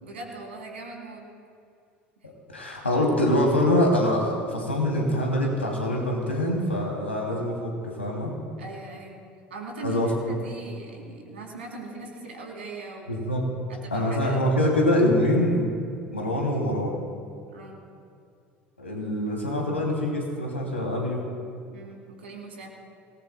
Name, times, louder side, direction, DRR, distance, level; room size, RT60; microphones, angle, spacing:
voice 1, 0.0-1.3 8.6-9.2 9.5-13.3 13.7-14.5 17.5-17.8 21.7-22.7, right 2 dB, 75° right, 0 dB, 3.3 m, -40 dB
voice 2, 2.5-8.3 9.8-10.3 13.1-13.4 13.9-15.7 16.1-17.0 18.8-21.2, left 1 dB, 85° left, -1 dB, 2.8 m, -24 dB
25.5 x 19.0 x 2.3 m, 2.4 s
figure-of-eight pair, 65°, 6 cm